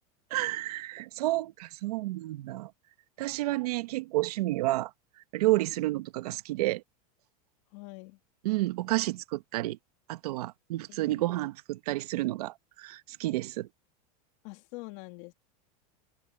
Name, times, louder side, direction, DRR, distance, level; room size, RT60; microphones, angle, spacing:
voice 1, 0.3-2.7 3.2-4.9 5.3-6.8 8.4-9.8 10.1-13.7, right 18 dB, 80° right, 1.4 m, -30 dB
voice 2, 7.7-8.2 10.9-11.2 14.4-15.3, left 24 dB, 60° left, 2.8 m, -45 dB
supercardioid pair, 140°, 19 cm